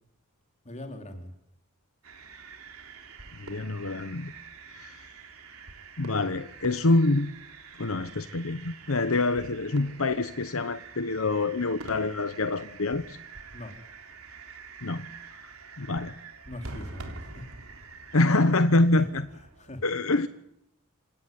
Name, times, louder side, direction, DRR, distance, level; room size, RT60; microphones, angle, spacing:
voice 1, 0.6-1.3 13.5-13.7 16.5-17.4 18.9-20.3, left 1 dB, 35° left, 4.4 m, -42 dB
sound 1, 2.0-19.7, right 4 dB, 80° right, 3.9 m, -46 dB
voice 2, 3.4-4.3 4.7-5.0 6.0-7.3 7.8-13.2 14.8-15.1 15.8-16.1 18.1-19.2 19.8-20.3, left 2 dB, 70° left, 1.0 m, -26 dB
27.5 x 17.5 x 9.7 m
head